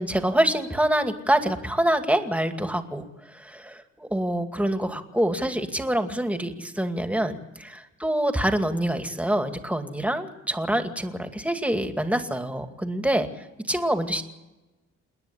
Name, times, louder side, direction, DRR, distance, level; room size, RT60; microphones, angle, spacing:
voice 1, 0.0-14.2, right 1 dB, 5° right, 6 dB, 2.3 m, -26 dB
28.5 x 10.0 x 10.0 m, 1.1 s
cardioid pair, 90°, 30 cm